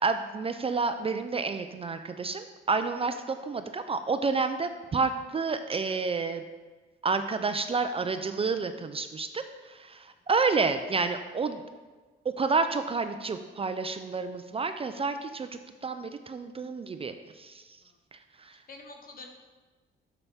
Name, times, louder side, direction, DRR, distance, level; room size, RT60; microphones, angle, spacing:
voice 1, 0.0-6.4 7.0-11.6 12.2-17.6 18.1-18.6, right 4 dB, 30° right, 9 dB, 0.4 m, -30 dB
voice 2, 18.7-19.3, left 3 dB, 45° left, 4 dB, 1.2 m, -47 dB
7.0 x 6.9 x 3.5 m, 1.3 s
cardioid pair, 90°, 20 cm